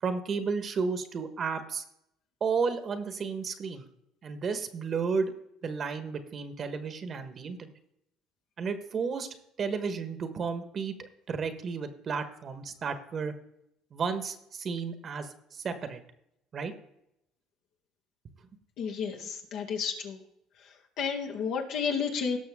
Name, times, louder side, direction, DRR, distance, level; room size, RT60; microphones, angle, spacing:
voice 1, 0.0-1.8 2.4-3.8 4.2-5.3 5.6-7.7 8.6-9.3 9.6-13.3 13.9-16.0 16.5-16.7, right 5 dB, 40° right, 10 dB, 1.4 m, -32 dB
voice 2, 18.8-20.2 20.6-22.4, left 6 dB, 70° left, 1 dB, 2.2 m, -32 dB
17.0 x 6.3 x 3.6 m, 0.79 s
supercardioid pair, 100°, 0 cm